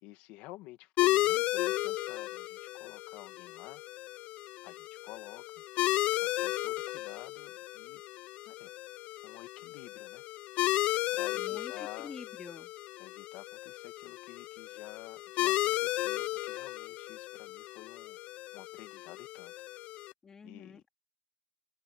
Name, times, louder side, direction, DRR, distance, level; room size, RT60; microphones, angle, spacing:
voice 1, 0.0-3.8 4.6-5.6 6.2-8.0 8.4-8.7 9.2-10.2 11.1-12.2 13.0-18.2 18.5-19.5 20.4-20.9, left 18 dB, 85° left, 1.9 m, -51 dB
sound 1, 1.0-20.1, left 17 dB, 60° left, 0.4 m, -34 dB
voice 2, 11.3-12.7 20.2-20.9, left 5 dB, 20° left, 2.2 m, -48 dB
cardioid pair, 160°, 2 cm